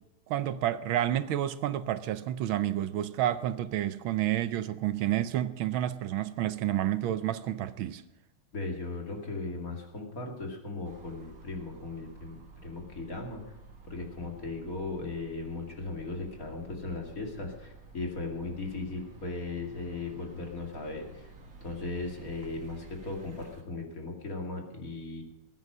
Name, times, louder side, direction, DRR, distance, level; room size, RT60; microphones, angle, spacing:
voice 1, 0.3-8.0, right 12 dB, 75° right, 1.4 m, -30 dB
voice 2, 8.5-13.6 13.8-21.3 21.6-25.2, left 3 dB, 40° left, 2.9 m, -37 dB
sound 1, 10.8-23.6, right 3 dB, 45° right, 2.0 m, -52 dB
19.5 x 9.5 x 6.1 m
omnidirectional pair, 2.4 m